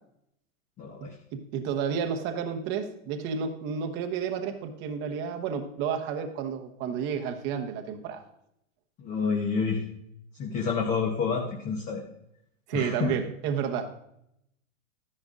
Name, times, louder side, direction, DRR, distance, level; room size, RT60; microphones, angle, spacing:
voice 1, 0.8-1.1 9.0-9.8 10.4-12.0 12.7-13.1, left 5 dB, 20° left, 1 dB, 0.8 m, -28 dB
voice 2, 1.3-8.2 12.7-13.9, right 7 dB, 25° right, 5 dB, 0.9 m, -31 dB
13.5 x 10.5 x 2.4 m, 0.78 s
supercardioid pair, 160°, 39 cm